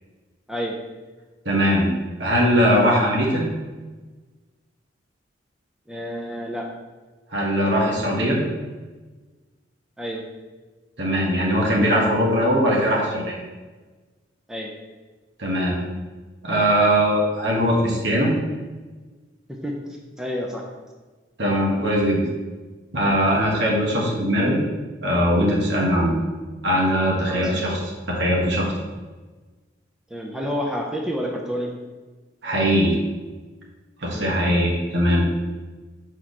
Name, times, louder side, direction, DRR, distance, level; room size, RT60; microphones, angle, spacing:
voice 1, 1.4-1.9 2.2-3.4 7.3-8.4 11.0-13.4 15.4-15.8 16.4-18.3 21.4-22.2 22.9-24.6 25.0-26.1 26.6-27.8 28.1-28.7 32.4-33.0 34.0-35.2, equal, 70° right, -2 dB, 1.5 m, -20 dB
voice 2, 5.9-6.7 10.0-10.2 14.5-14.7 19.5-19.8 20.2-20.6 27.3-27.8 30.1-31.7 34.1-34.4, equal, 5° right, 0 dB, 0.5 m, -29 dB
6.3 x 4.5 x 4.2 m, 1.3 s
head